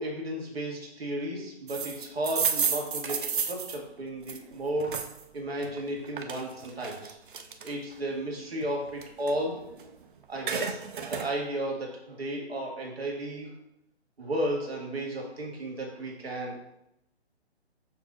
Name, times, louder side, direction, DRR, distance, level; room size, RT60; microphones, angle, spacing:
voice 1, 0.0-5.0 5.3-7.2 7.6-9.6 10.3-10.8 11.1-13.5 14.2-16.6, right 1 dB, 65° right, -1 dB, 1.9 m, -33 dB
sound 1, 1.7-5.2 5.6-8.0 8.4-10.0 10.2-11.3, right 6 dB, 50° right, 0.7 m, -32 dB
6.9 x 6.5 x 2.5 m, 0.81 s
figure-of-eight pair, 135°, 33 cm